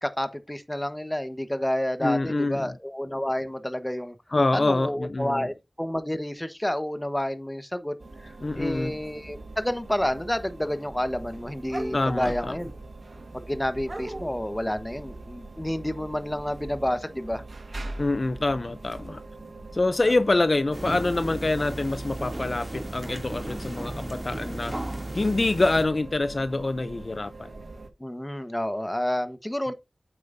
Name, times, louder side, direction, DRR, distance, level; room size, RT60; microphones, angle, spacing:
voice 1, 0.0-4.1 4.5-8.0 8.2-12.7 13.3-17.4 28.0-29.7, left 1 dB, 15° left, 1.2 m, -29 dB
voice 2, 2.0-2.7 4.3-5.5 8.4-8.9 11.9-12.5 18.0-19.2 19.7-24.8 25.1-27.5, left 2 dB, 55° left, 0.5 m, -25 dB
sound 1, 8.0-27.9, right 2 dB, 80° right, 1.5 m, -42 dB
sound 2, 10.6-10.8 11.1-12.8 13.8-14.4 18.6-18.8 20.0-20.1 22.3-22.4 23.2-23.5, right 1 dB, 45° right, 1.1 m, -39 dB
sound 3, 20.7-25.8, right 1 dB, 20° right, 2.6 m, -35 dB
8.8 x 7.7 x 2.7 m
wide cardioid pair, 45°, 0 cm